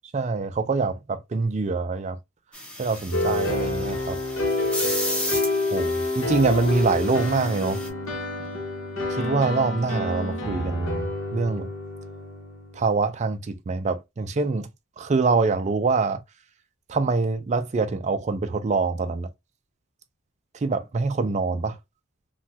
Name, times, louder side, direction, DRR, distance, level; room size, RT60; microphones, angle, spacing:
voice 1, 0.1-2.2 2.8-4.2 4.6-4.7 5.7-7.8 9.1-11.7 12.7-14.7 15.0-16.2 16.9-19.3 20.5-21.8, right 4 dB, 30° right, 0.3 m, -25 dB
sound 1, 2.5-7.9, left 1 dB, 5° left, 0.7 m, -34 dB
sound 2, 3.1-12.9, left 2 dB, 60° left, 0.9 m, -28 dB
3.1 x 2.2 x 2.6 m
head